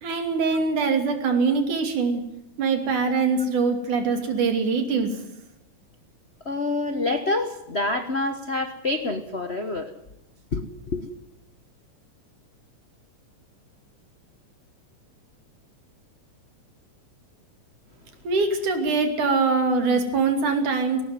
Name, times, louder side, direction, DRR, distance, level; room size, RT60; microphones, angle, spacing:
voice 1, 0.0-2.2 2.6-5.2 18.2-21.0, right 4 dB, 85° right, 6 dB, 4.3 m, -23 dB
voice 2, 6.4-9.9 10.5-10.6 10.9-11.0, left 2 dB, 90° left, 8 dB, 0.5 m, -27 dB
19.0 x 18.0 x 9.3 m, 0.86 s
omnidirectional pair, 3.4 m